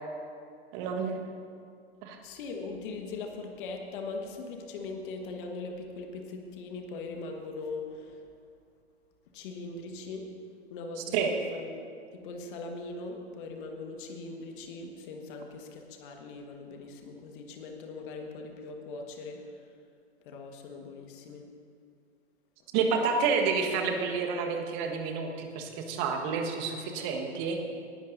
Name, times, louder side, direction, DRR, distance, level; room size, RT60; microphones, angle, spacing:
voice 1, 0.7-1.2 2.0-2.2 11.1-11.3 22.7-27.6, right 5 dB, 40° right, 3 dB, 1.5 m, -29 dB
voice 2, 2.2-8.3 9.3-10.3 10.7-11.1 11.5-11.8 12.1-19.6 20.2-21.4, left 3 dB, 50° left, 3 dB, 1.6 m, -40 dB
19.0 x 11.5 x 2.7 m, 2.4 s
figure-of-eight pair, 100°, 33 cm